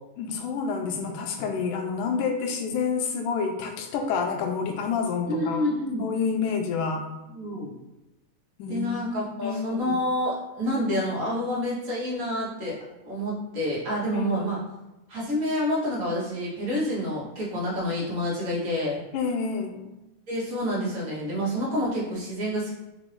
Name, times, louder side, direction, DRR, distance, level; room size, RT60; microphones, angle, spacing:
voice 1, 0.2-5.6 6.0-7.1 8.6-8.9 9.4-10.0 14.1-14.6 19.1-19.9, left 5 dB, 90° left, 3 dB, 2.1 m, -28 dB
voice 2, 5.3-6.0 7.3-7.8 8.7-12.7 13.0-14.6 15.1-19.0 20.3-22.7, equal, 45° right, -8 dB, 1.1 m, -28 dB
5.3 x 2.5 x 3.4 m, 0.98 s
omnidirectional pair, 3.5 m